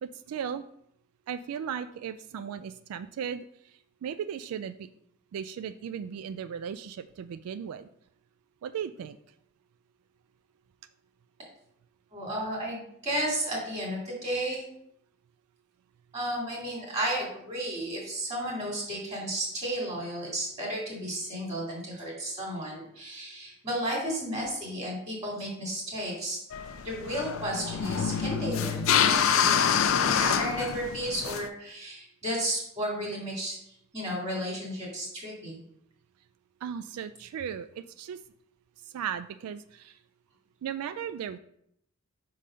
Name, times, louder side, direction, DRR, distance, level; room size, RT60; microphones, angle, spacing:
voice 1, 0.0-0.6 1.3-4.9 5.3-7.9 8.6-9.2 36.6-38.2 38.8-40.0 40.6-41.4, right 8 dB, 80° right, 13 dB, 0.3 m, -36 dB
voice 2, 12.1-14.6 16.1-26.4 26.8-29.6 30.1-33.6 33.9-35.6, right 1 dB, 30° right, -3 dB, 2.1 m, -33 dB
sound 1, 26.5-31.5, left 7 dB, 65° left, 0.4 m, -26 dB
5.5 x 3.8 x 4.9 m, 0.73 s
head